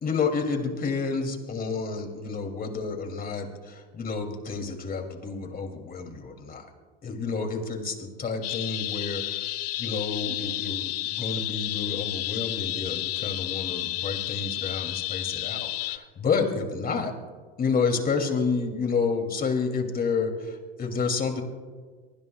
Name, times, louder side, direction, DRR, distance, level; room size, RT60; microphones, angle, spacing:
voice 1, 0.0-6.7 7.0-9.5 9.8-17.1 17.6-21.4, left 5 dB, 30° left, 4 dB, 2.9 m, -29 dB
sound 1, 8.4-16.0, left 17 dB, 55° left, 1.0 m, -31 dB
23.5 x 23.5 x 2.4 m, 1.5 s
hypercardioid pair, 80°, 29 cm